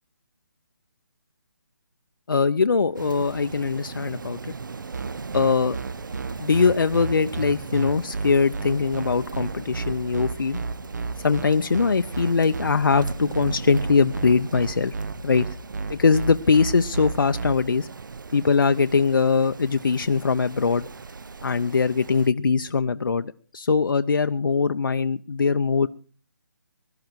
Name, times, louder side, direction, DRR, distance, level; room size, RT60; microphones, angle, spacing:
voice 1, 2.3-4.4 5.3-5.8 6.4-10.6 11.2-14.9 15.2-15.5 15.9-17.9 18.3-20.9 21.4-25.9, left 5 dB, 90° left, 9 dB, 0.7 m, -22 dB
Rain, 2.9-22.3, right 4 dB, 70° right, 0.9 m, -38 dB
sound 1, 4.9-17.5, right 4 dB, 55° right, 1.4 m, -31 dB
20.5 x 12.0 x 4.6 m, 0.41 s
hypercardioid pair, 170°, 11 cm